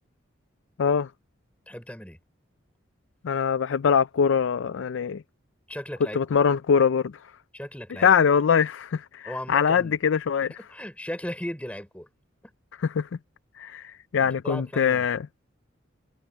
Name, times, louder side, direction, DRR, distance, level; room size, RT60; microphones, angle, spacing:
voice 1, 1.7-2.2 5.7-6.2 7.5-8.1 9.2-10.0 10.6-12.1 14.2-15.1, equal, 5° left, 4.1 m, -36 dB
voice 2, 3.2-5.2 6.2-7.1 8.0-10.5 13.0-13.1 13.6-15.2, left 7 dB, 70° left, 0.4 m, -23 dB
head